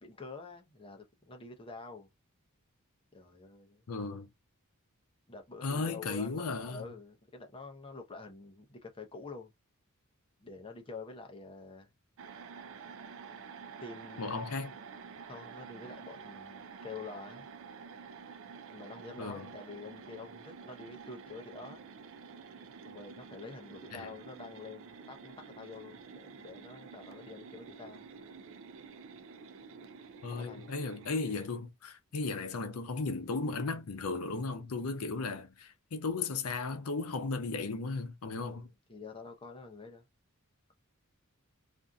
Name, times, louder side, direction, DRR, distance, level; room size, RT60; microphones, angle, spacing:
voice 1, 0.0-2.1 3.1-3.8 5.3-9.5 10.4-11.9 13.8-14.4 15.3-17.5 18.7-21.8 22.9-28.1 30.3-30.7 38.5-40.1, left 3 dB, 25° left, 0.6 m, -47 dB
voice 2, 3.9-4.3 5.6-6.9 14.2-14.7 19.2-19.5 23.9-24.1 30.2-38.7, left 3 dB, 80° left, 0.6 m, -35 dB
sound 1, 12.2-31.5, right 5 dB, 60° right, 0.4 m, -49 dB
2.6 x 2.5 x 2.2 m
head